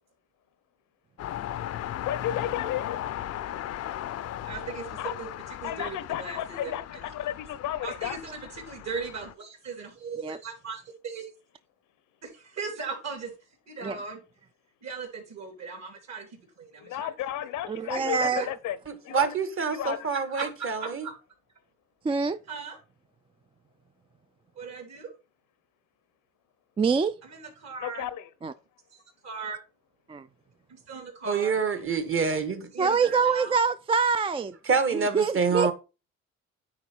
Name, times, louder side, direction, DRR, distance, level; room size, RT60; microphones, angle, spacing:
sound 1, 1.2-9.3, left 11 dB, 55° left, 0.5 m, -37 dB
voice 1, 2.0-3.0 5.0-5.2 5.6-8.2 16.8-18.8 19.0-19.3 19.7-20.1 27.8-28.3 31.7-31.8, left 11 dB, 85° left, 0.8 m, -33 dB
voice 2, 4.5-5.3 5.6-7.0 7.8-11.3 12.2-13.3 13.7-14.2 14.8-17.1 17.9-18.1 18.3-18.5 20.3-20.5 20.8-21.1 22.5-22.8 24.6-25.1 27.2-28.1 28.9-29.6 30.7-31.6 32.7-33.6, right 5 dB, 60° right, 3.5 m, -38 dB
voice 3, 17.7-18.5 22.0-22.4 26.8-27.1 28.4-28.5 30.1-30.2 32.8-34.6 34.9-35.7, right 5 dB, 20° right, 0.3 m, -25 dB
voice 4, 18.9-21.1 31.2-32.7 34.7-35.7, right 5 dB, 45° right, 1.4 m, -27 dB
9.6 x 4.1 x 4.4 m
cardioid pair, 90°, 30 cm